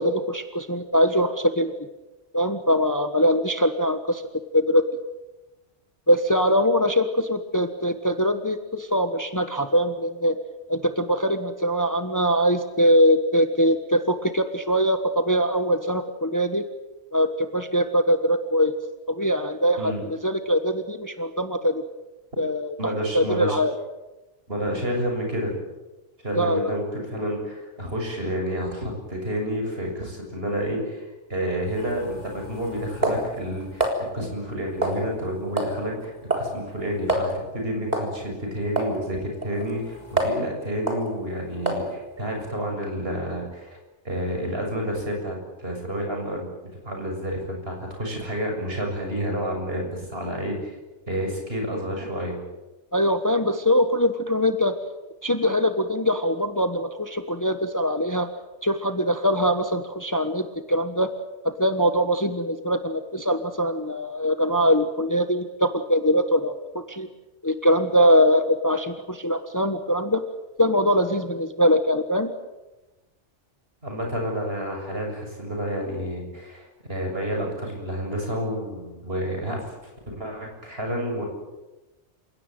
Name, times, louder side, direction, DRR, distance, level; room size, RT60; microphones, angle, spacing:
voice 1, 0.0-1.7 2.3-4.2 4.5-4.8 6.1-10.3 10.7-16.6 17.1-18.7 19.1-21.8 22.4-22.7 23.1-23.7 26.4-26.7 52.9-54.7 55.2-58.3 58.6-61.1 61.6-67.1 67.4-70.2 70.6-72.3, equal, 15° left, 8 dB, 1.3 m, -22 dB
voice 2, 22.8-23.6 24.5-25.6 26.2-31.0 31.3-43.8 44.0-46.5 46.8-50.7 51.1-52.4 73.8-79.7 80.1-81.3, equal, 55° right, 2 dB, 7.3 m, -29 dB
sound 1, 31.7-34.0 34.8-35.3 35.6-35.8 36.0-36.5 36.8-36.9 37.1-37.3 37.9-38.1 38.8-38.9 39.4-40.5 40.9-41.1 41.7-41.9, right 1 dB, 35° right, 4.1 m, -27 dB
28.5 x 17.5 x 9.2 m, 1.1 s
omnidirectional pair, 1.2 m